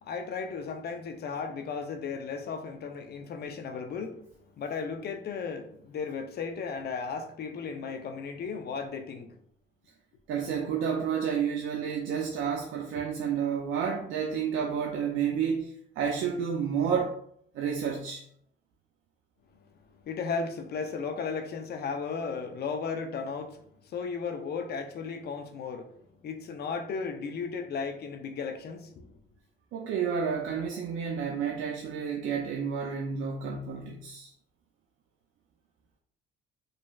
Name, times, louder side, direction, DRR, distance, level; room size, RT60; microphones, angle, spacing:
voice 1, 0.0-4.3 4.6-9.3 19.5-19.6 20.0-25.9 26.2-29.2, left 5 dB, 55° left, 0.5 m, -35 dB
voice 2, 10.3-17.2 17.5-18.2 29.7-34.3, right 7 dB, 80° right, 0.4 m, -30 dB
3.1 x 2.6 x 2.3 m
cardioid pair, 90°, 20 cm